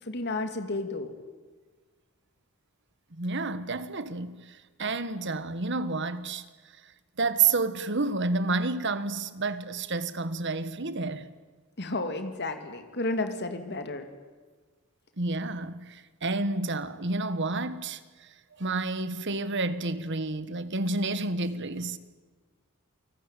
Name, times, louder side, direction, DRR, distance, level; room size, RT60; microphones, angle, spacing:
voice 1, 0.0-1.1 11.8-14.1, left 2 dB, 50° left, 2.4 m, -32 dB
voice 2, 3.1-6.4 7.2-11.3 15.2-18.0 18.6-22.0, right 3 dB, 55° right, 1.4 m, -30 dB
28.5 x 19.5 x 9.1 m
head